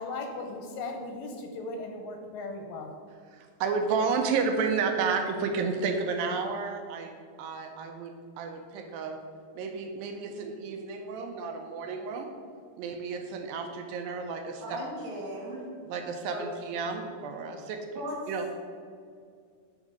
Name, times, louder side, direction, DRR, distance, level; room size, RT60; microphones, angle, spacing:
voice 1, 0.0-2.9, left 3 dB, 80° left, 3 dB, 2.2 m, -37 dB
voice 2, 3.3-7.1 7.4-9.2 9.6-12.3 12.8-14.8 15.9-18.0 18.3-18.4, right 5 dB, 80° right, 4 dB, 2.3 m, -31 dB
voice 3, 14.6-15.6 16.3-16.4 17.9-18.2, right 1 dB, 65° right, -3 dB, 2.3 m, -37 dB
8.9 x 3.6 x 5.0 m, 2.2 s
omnidirectional pair, 4.3 m